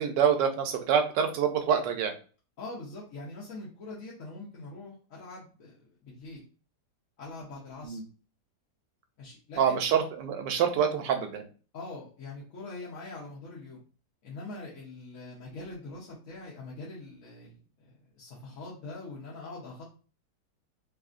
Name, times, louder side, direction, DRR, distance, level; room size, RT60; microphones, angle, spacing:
voice 1, 0.0-2.1 7.8-8.0 9.6-11.4, right 7 dB, 90° right, 6 dB, 1.3 m, -26 dB
voice 2, 2.6-6.4 7.2-8.0 9.2-9.8 11.7-13.8 14.2-19.8, left 2 dB, 60° left, -6 dB, 1.1 m, -43 dB
3.2 x 2.7 x 2.4 m, 0.37 s
omnidirectional pair, 1.8 m